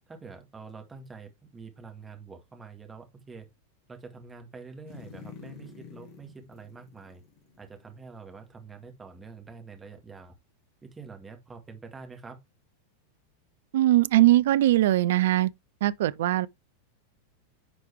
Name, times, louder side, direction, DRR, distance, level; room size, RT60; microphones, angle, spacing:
voice 1, 0.1-3.5 3.9-7.2 7.6-10.4 10.8-12.4, right 4 dB, 15° right, 1.9 m, -46 dB
sound 1, 4.9-8.2 8.6-8.7, left 6 dB, 40° left, 2.1 m, -48 dB
voice 2, 13.7-15.5 15.8-16.5, right 15 dB, 55° right, 0.4 m, -21 dB
10.0 x 4.5 x 3.4 m
figure-of-eight pair, 90°, 0 cm